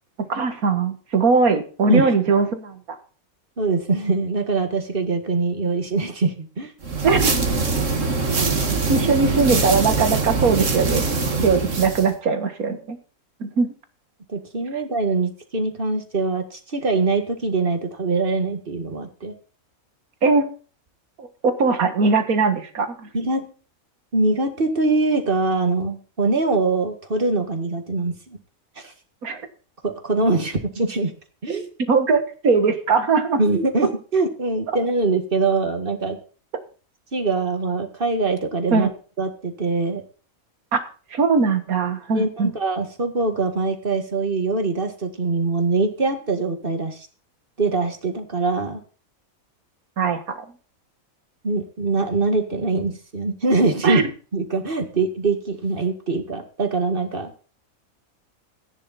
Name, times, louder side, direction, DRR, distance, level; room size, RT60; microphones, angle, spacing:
voice 1, 0.2-2.8 7.0-7.3 8.9-11.0 11.4-13.0 13.4-13.7 20.2-20.5 21.2-23.1 29.2-29.4 31.9-33.4 38.7-38.9 40.7-40.8 41.1-42.5 50.0-50.4 53.8-54.0, right 4 dB, 90° right, 9 dB, 2.1 m, -20 dB
voice 2, 3.6-6.7 14.3-19.3 23.1-23.4 24.1-28.4 28.8-28.9 29.8-31.1 31.4-31.7 33.4-36.2 37.1-38.9 39.2-40.0 42.1-47.1 47.6-48.8 51.4-54.0 54.3-57.3, right 3 dB, 40° right, 7 dB, 2.1 m, -23 dB
sound 1, 6.8-12.1, right 4 dB, 60° right, 2.3 m, -22 dB
14.5 x 10.0 x 4.2 m, 0.38 s
omnidirectional pair, 1.5 m